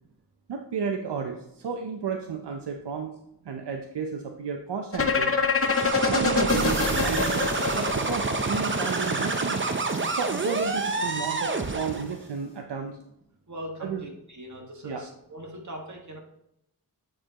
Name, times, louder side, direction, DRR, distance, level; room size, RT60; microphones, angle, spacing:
voice 1, 0.5-3.2 3.4-5.3 6.1-7.5 7.7-9.6 10.1-13.0 13.8-14.0 14.8-15.0, right 6 dB, 75° right, 4 dB, 0.7 m, -32 dB
sound 1, 4.9-8.8, left 4 dB, 35° left, 0.7 m, -25 dB
sound 2, 5.6-12.1, right 3 dB, 30° right, 0.6 m, -28 dB
sound 3, 6.5-12.4, equal, 5° left, 2.6 m, -39 dB
voice 2, 13.5-16.2, equal, 45° right, 1 dB, 1.7 m, -40 dB
8.5 x 5.0 x 2.9 m, 0.78 s
wide cardioid pair, 75°, 41 cm